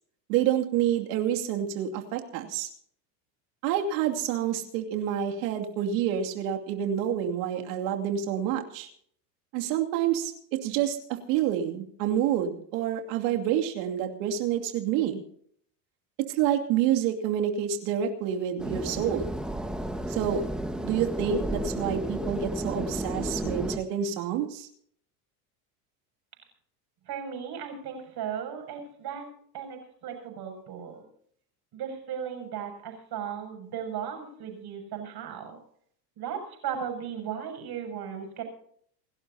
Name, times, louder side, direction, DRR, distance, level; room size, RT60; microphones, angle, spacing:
voice 1, 0.3-2.7 3.6-8.9 9.5-15.2 16.3-19.3 20.1-20.4 20.8-24.7, right 9 dB, 75° right, 3 dB, 2.7 m, -28 dB
sound 1, 18.6-23.8, right 1 dB, ahead, 1.5 m, -32 dB
voice 2, 27.1-29.2 29.5-31.0 31.7-35.6 36.2-38.4, right 8 dB, 50° right, 4 dB, 7.2 m, -36 dB
28.5 x 12.0 x 2.8 m, 0.62 s
supercardioid pair, 110°, 48 cm